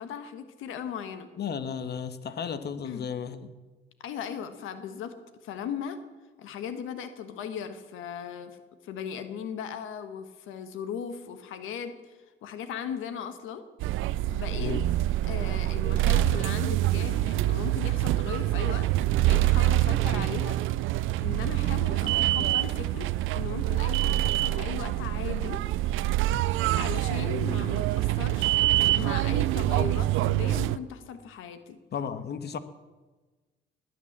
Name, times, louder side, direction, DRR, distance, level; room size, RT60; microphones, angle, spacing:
voice 1, 0.0-1.3 2.8-3.1 4.0-5.1 5.4-6.0 6.4-8.6 8.8-12.1 12.4-13.6 14.3-14.7 15.2-18.9 19.2-20.6 21.2-25.6 26.8-28.6 28.9-31.8, left 8 dB, 90° left, 10 dB, 1.4 m, -37 dB
voice 2, 1.4-3.5 14.5-14.9 31.9-32.6, left 7 dB, 55° left, 12 dB, 1.3 m, -34 dB
sound 1, 13.8-30.8, right 15 dB, 90° right, 0.5 m, -25 dB
19.5 x 9.4 x 7.3 m, 1.3 s
cardioid pair, 90°, 20 cm